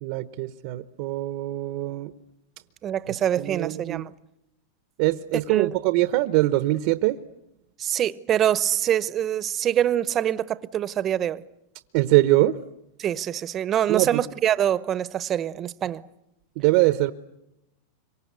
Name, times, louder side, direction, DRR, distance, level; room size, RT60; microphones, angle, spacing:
voice 1, 0.0-2.1 3.4-4.0 5.0-7.2 11.9-12.6 13.9-14.2 16.6-17.1, right 18 dB, 55° right, 0.9 m, -23 dB
voice 2, 2.8-4.1 5.5-5.7 7.8-11.4 13.0-16.0, right 10 dB, 30° right, 0.9 m, -25 dB
26.5 x 24.5 x 8.2 m
supercardioid pair, 135°, 0 cm